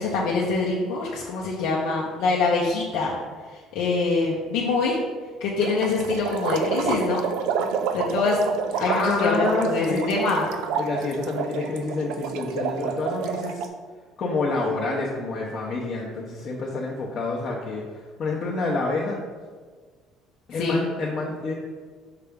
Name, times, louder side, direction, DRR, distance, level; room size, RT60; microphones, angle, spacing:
voice 1, 0.0-3.2 3.5-5.0 5.4-7.2 7.9-8.4 8.7-10.5 20.5-20.8, left 4 dB, 85° left, -4 dB, 0.8 m, -24 dB
sound 1, 5.6-13.7, right 6 dB, 75° right, 0.4 m, -29 dB
voice 2, 8.9-10.2 10.8-13.7 14.2-17.8 18.2-19.2 20.5-21.5, left 3 dB, 40° left, -4 dB, 0.8 m, -27 dB
5.8 x 3.4 x 5.1 m, 1.5 s
cardioid pair, 155°, 0 cm